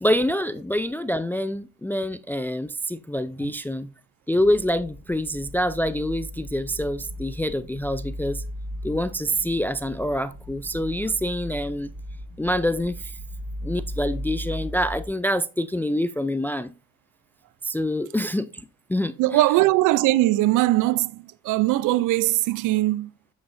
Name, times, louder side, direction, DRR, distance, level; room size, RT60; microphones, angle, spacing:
voice 1, 0.0-3.9 4.3-8.4 8.8-11.9 12.4-13.1 13.6-16.7 17.6-18.5 18.9-19.1, equal, 5° left, 0.4 m, -26 dB
sound 1, 4.4-15.1, equal, 65° right, 1.4 m, -37 dB
voice 2, 19.2-23.1, right 17 dB, 85° right, 0.5 m, -21 dB
7.5 x 6.9 x 2.5 m
cardioid pair, 90°, 30 cm